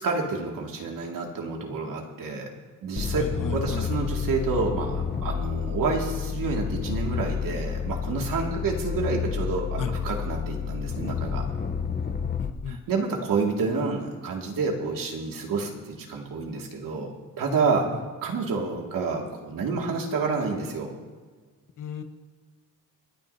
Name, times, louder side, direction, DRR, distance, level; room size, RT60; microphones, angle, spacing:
voice 1, 0.0-2.5 2.8-3.3 3.5-11.4 12.7-17.1 17.4-17.9 18.2-20.9, right 4 dB, 80° right, 0 dB, 2.3 m, -29 dB
sound 1, 3.0-12.5, left 7 dB, 30° left, 0.9 m, -30 dB
voice 2, 3.2-3.9 9.8-9.9 12.4-12.8 21.8-22.0, left 6 dB, 70° left, 7 dB, 1.3 m, -34 dB
29.0 x 9.8 x 2.8 m, 1.5 s
cardioid pair, 105°, 33 cm